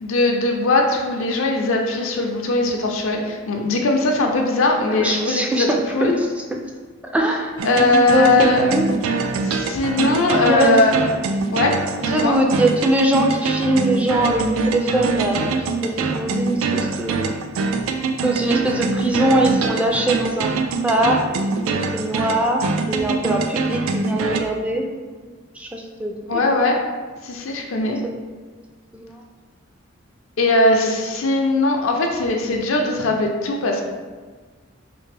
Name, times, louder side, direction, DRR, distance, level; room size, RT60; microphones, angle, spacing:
voice 1, 0.0-5.7 5.9-6.2 7.6-8.7 9.4-10.9 11.5-12.4 26.3-26.8 27.2-28.0 30.4-33.8, left 2 dB, 75° left, 2 dB, 0.5 m, -20 dB
voice 2, 4.9-6.6 7.0-7.5 8.1-8.9 10.4-10.8 12.1-17.4 18.2-20.5 20.8-21.2 21.7-24.9 25.1-25.3 25.5-26.6 27.8-28.1 28.9-29.2 30.8-31.0, right 1 dB, 5° right, 1 dB, 0.3 m, -22 dB
sound 1, 7.6-24.4, right 4 dB, 85° right, 0.3 m, -24 dB
3.4 x 3.2 x 3.3 m, 1.4 s
head